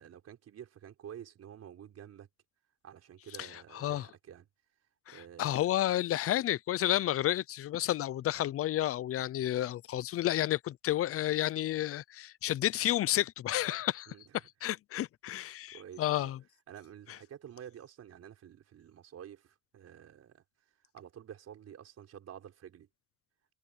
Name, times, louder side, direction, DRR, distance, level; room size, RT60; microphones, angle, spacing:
voice 1, 0.0-2.3 2.8-4.5 5.1-5.7 14.1-14.5 15.5-16.3 16.7-20.4 20.9-22.9, right 9 dB, 45° right, 5.2 m, -50 dB
voice 2, 3.4-4.0 5.1-14.1 14.6-16.4, left 13 dB, 40° left, 0.6 m, -31 dB
cardioid pair, 120°, 36 cm